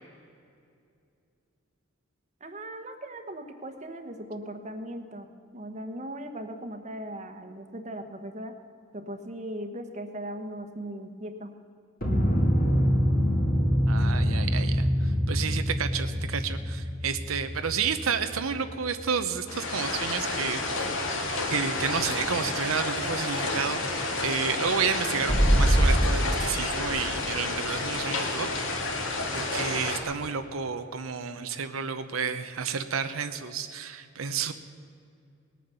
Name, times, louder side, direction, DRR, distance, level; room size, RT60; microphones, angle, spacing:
voice 1, 2.4-5.3 5.5-8.5 8.9-11.5, right 1 dB, 35° right, 6 dB, 1.2 m, -38 dB
sound 1, 12.0-20.4 25.3-25.9, equal, 45° left, 2.7 m, -25 dB
voice 2, 13.9-20.9 21.5-28.5 29.3-34.5, right 6 dB, 90° right, 8 dB, 0.8 m, -31 dB
sound 2, 19.5-30.0, left 2 dB, 70° left, 2.1 m, -30 dB
19.5 x 9.1 x 6.9 m, 2.4 s
head